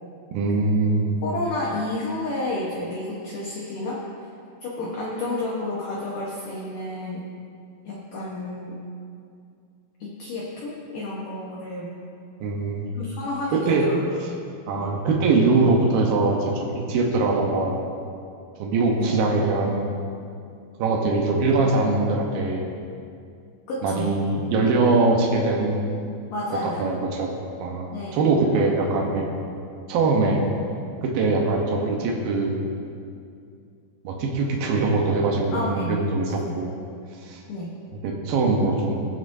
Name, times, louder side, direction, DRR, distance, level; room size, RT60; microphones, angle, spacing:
voice 1, 0.3-1.2 12.4-13.0 13.5-13.9 14.2-14.3 14.7-17.8 18.6-19.9 20.8-22.6 23.8-25.8 26.6-27.3 27.6-29.3 29.9-30.4 31.0-32.6 34.0-36.7 37.2-37.4 37.9-39.1, right 3 dB, 80° right, 0 dB, 2.1 m, -22 dB
voice 2, 1.2-4.0 4.6-7.3 7.9-8.8 10.0-11.9 12.9-14.4 14.7-14.9 19.0-19.2 23.7-24.1 26.3-26.9 27.9-28.2 35.5-36.0 36.3-36.6 37.5-37.7, left 2 dB, 75° left, -5 dB, 1.9 m, -31 dB
21.0 x 7.5 x 2.7 m, 2.4 s
omnidirectional pair, 5.5 m